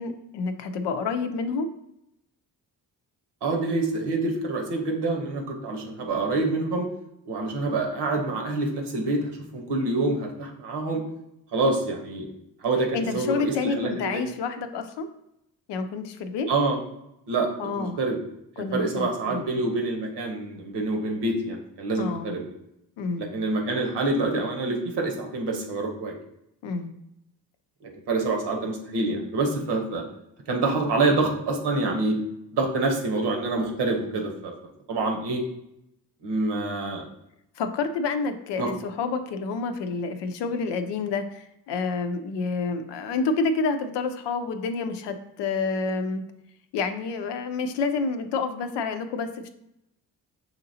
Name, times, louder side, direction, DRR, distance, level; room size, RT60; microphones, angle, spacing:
voice 1, 0.0-1.7 12.9-15.1 15.7-16.5 17.6-18.0 18.6-19.5 22.0-22.4 23.0-23.3 26.6-26.9 37.6-46.2 46.7-49.5, left 4 dB, 85° left, 8 dB, 0.5 m, -28 dB
voice 2, 3.4-6.9 7.3-11.0 11.5-12.3 12.6-14.2 16.5-16.8 17.3-17.5 17.8-18.2 18.6-22.4 23.2-26.2 27.8-30.0 30.5-32.2 32.5-34.5 34.9-35.4 36.2-37.0 38.6-38.7, right 2 dB, 80° right, 1 dB, 1.0 m, -26 dB
5.7 x 2.8 x 2.7 m, 0.82 s
supercardioid pair, 60°, 41 cm